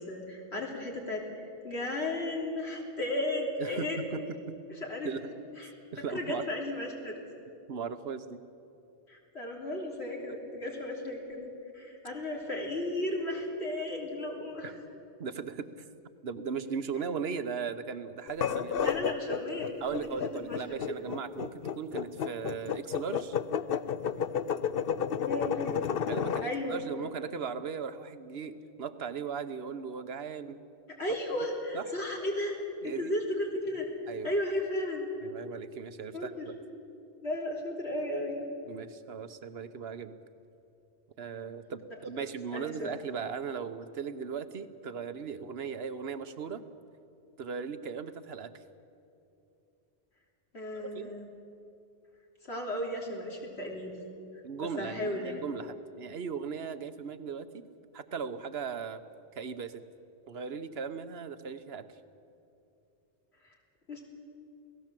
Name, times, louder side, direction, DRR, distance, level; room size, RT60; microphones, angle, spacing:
voice 1, 0.0-4.3 4.7-5.1 5.6-5.7 6.1-7.2 9.1-14.7 18.8-19.7 20.5-20.6 25.2-25.8 26.4-26.8 31.0-32.6 32.8-33.9 34.2-35.1 36.1-36.4 37.2-38.4 41.9-42.2 42.5-43.0 50.5-51.3 52.5-53.9 54.8-55.4 63.9-64.0, left 1 dB, 80° left, -2 dB, 3.6 m, -34 dB
voice 2, 3.6-4.2 4.5-4.6 5.0-5.2 5.6-6.4 7.7-8.4 14.6-14.7 15.2-15.7 16.2-18.9 19.8-23.4 26.1-30.6 31.3-31.4 31.7-31.9 32.8-33.1 34.1-34.3 35.2-36.5 38.7-40.1 41.2-46.6 47.4-48.5 50.9-51.1 54.4-57.6 57.9-59.0 59.3-59.8 60.3-61.9, right 6 dB, 70° right, 11 dB, 1.2 m, -38 dB
sound 1, 18.3-26.5, left 8 dB, 60° left, 0.9 m, -31 dB
28.0 x 17.5 x 7.6 m, 2.7 s
omnidirectional pair, 1.1 m